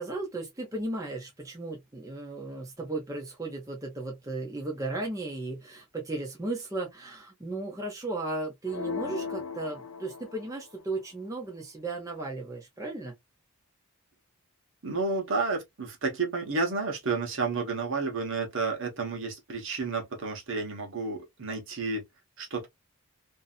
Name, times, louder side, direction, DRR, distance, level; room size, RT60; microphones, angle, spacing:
voice 1, 0.0-13.1, right 2 dB, 15° right, 0.7 m, -35 dB
sound 1, 8.7-10.7, left 5 dB, 70° left, 0.4 m, -37 dB
voice 2, 14.8-22.0 22.4-22.7, right 4 dB, 60° right, 1.0 m, -31 dB
2.6 x 2.6 x 2.4 m
head